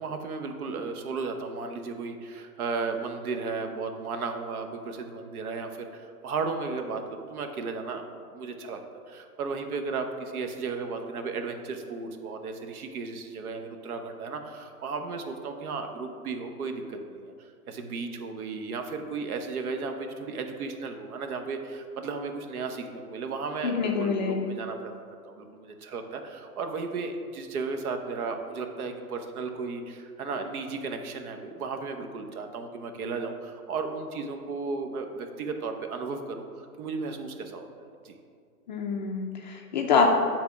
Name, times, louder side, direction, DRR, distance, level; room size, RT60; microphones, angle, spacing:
voice 1, 0.0-8.0 8.3-8.8 9.1-24.9 25.2-38.2, right 4 dB, 65° right, 6 dB, 1.0 m, -34 dB
voice 2, 23.6-24.5 38.7-40.1, left 5 dB, 30° left, 1 dB, 0.4 m, -26 dB
7.5 x 3.6 x 5.7 m, 2.2 s
hypercardioid pair, 135°, 47 cm